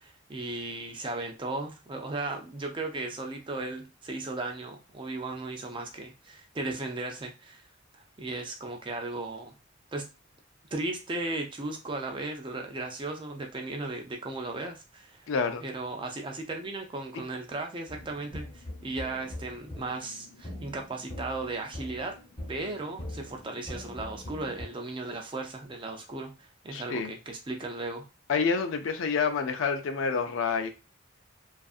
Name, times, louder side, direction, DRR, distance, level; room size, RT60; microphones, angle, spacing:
voice 1, 0.0-7.6 7.9-9.5 9.9-10.1 10.7-15.3 15.6-22.2 22.5-28.1, right 2 dB, 25° right, 0.4 m, -36 dB
voice 2, 15.3-15.6 26.7-27.1 28.3-30.7, left 5 dB, 75° left, 0.4 m, -28 dB
sound 1, 17.9-24.7, left 1 dB, 25° left, 0.8 m, -42 dB
2.6 x 2.4 x 2.4 m
head